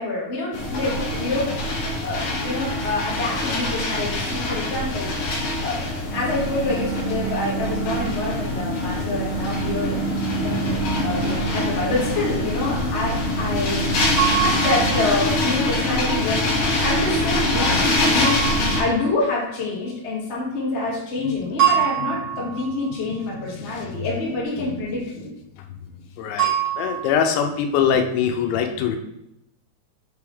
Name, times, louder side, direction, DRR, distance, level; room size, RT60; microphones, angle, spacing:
voice 1, 0.0-5.1 5.6-5.8 6.1-10.0 10.4-16.4 16.8-18.3 18.6-25.3, left 3 dB, 35° left, -6 dB, 1.0 m, -27 dB
sound 1, 0.5-18.8, left 2 dB, 65° left, 2.0 m, -24 dB
sound 2, 6.1-15.0, right 10 dB, 85° right, 2.8 m, -31 dB
sound 3, 14.2-15.6 18.2-19.4 21.6-23.0 26.4-27.1, right 10 dB, 40° right, 3.2 m, -24 dB
voice 2, 21.2-22.1 23.2-24.1 24.7-24.8 25.8-29.0, left 7 dB, 85° left, 5 dB, 2.9 m, -25 dB
6.8 x 4.9 x 3.5 m, 0.83 s
omnidirectional pair, 5.2 m